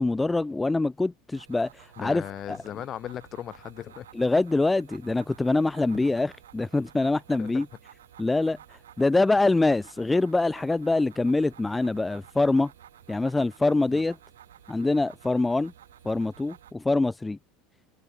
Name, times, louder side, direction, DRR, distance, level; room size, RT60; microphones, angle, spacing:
voice 1, 0.0-2.2 2.5-2.6 4.2-7.7 8.2-8.6 9.0-12.7 13.1-14.2 14.7-15.7 16.0-17.4, left 2 dB, 10° left, 0.4 m, -24 dB
sound 1, 1.3-16.7, right 11 dB, 90° right, 3.6 m, -52 dB
voice 2, 2.0-4.1 7.4-7.6 13.8-14.0, left 11 dB, 45° left, 4.1 m, -37 dB
hypercardioid pair, 90°, 0 cm